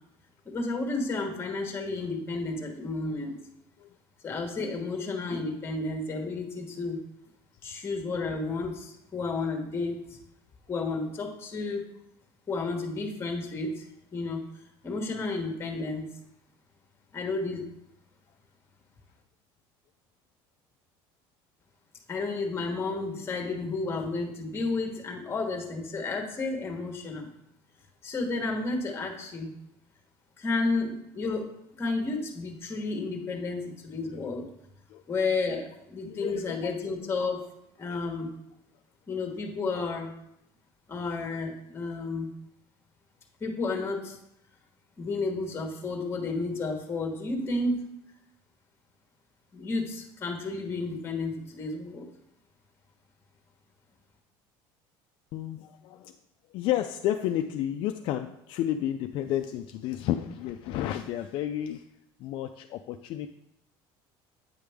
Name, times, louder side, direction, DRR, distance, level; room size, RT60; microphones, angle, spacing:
voice 1, 0.4-3.4 4.2-7.0 7.6-10.2 10.7-11.9 12.5-13.8 14.1-14.4 14.8-16.1 17.1-17.6 22.1-27.3 28.0-29.5 30.4-31.5 31.8-34.5 35.1-37.5 37.8-38.3 39.1-40.1 40.9-42.3 43.4-44.2 45.0-47.8 49.5-52.1, left 3 dB, 25° left, 3 dB, 1.2 m, -32 dB
voice 2, 36.0-36.8 37.8-38.0 39.7-39.8 55.3-56.1 56.5-61.8 62.2-63.3, left 12 dB, 60° left, 6 dB, 0.3 m, -31 dB
8.6 x 5.0 x 3.5 m, 0.80 s
cardioid pair, 135°, 10 cm